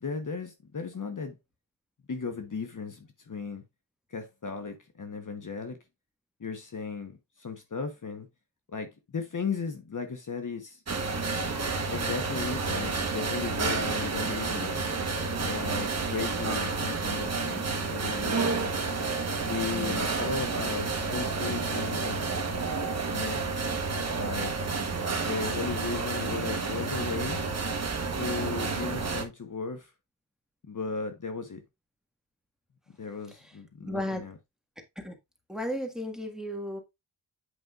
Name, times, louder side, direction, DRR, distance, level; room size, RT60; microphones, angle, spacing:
voice 1, 0.0-1.3 2.1-3.6 4.1-5.8 6.4-8.3 8.7-10.8 11.9-14.8 15.4-18.7 19.4-22.3 23.1-23.4 24.2-24.5 25.3-27.4 28.2-29.9 30.7-31.6 33.0-34.3, left 5 dB, 40° left, 1.2 m, -36 dB
sound 1, 10.9-29.2, right 4 dB, 35° right, 1.2 m, -30 dB
voice 2, 19.7-20.1 25.0-25.1 33.4-33.5 33.8-34.2 34.9-35.2 35.5-36.8, left 1 dB, ahead, 1.6 m, -34 dB
8.2 x 5.4 x 2.5 m
wide cardioid pair, 85°, 45 cm